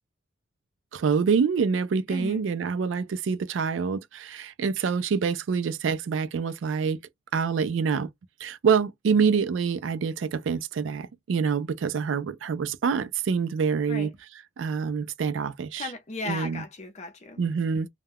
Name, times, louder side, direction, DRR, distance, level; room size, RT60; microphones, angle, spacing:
voice 1, 0.9-7.0 7.3-8.1 8.4-15.9 16.2-16.7 17.4-17.9, right 6 dB, 80° right, 0.4 m, -26 dB
voice 2, 2.1-2.4 13.9-14.1 15.8-17.4, left 3 dB, 35° left, 0.6 m, -36 dB
2.2 x 2.2 x 3.3 m
head